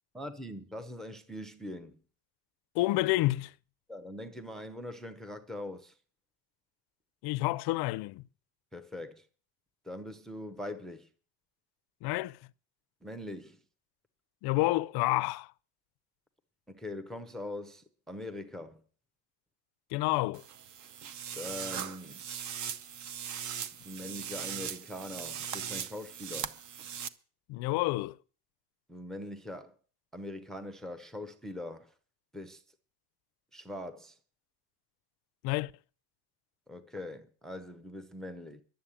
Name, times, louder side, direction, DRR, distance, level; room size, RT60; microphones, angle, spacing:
voice 1, 0.1-2.0 3.9-5.9 8.7-9.3 9.8-11.1 13.0-13.6 16.7-18.8 21.3-22.3 23.8-26.6 28.9-29.8 30.1-31.9 32.3-32.6 33.5-34.2 36.7-38.6, left 1 dB, ahead, 0.7 m, -42 dB
voice 2, 2.7-3.5 7.2-8.2 12.0-12.4 14.4-15.5 19.9-20.4 27.5-28.2 35.4-35.7, left 19 dB, 55° left, 0.5 m, -29 dB
sound 1, 20.3-27.1, right 8 dB, 40° right, 0.7 m, -39 dB
11.5 x 7.6 x 8.8 m
cardioid pair, 160°, 48 cm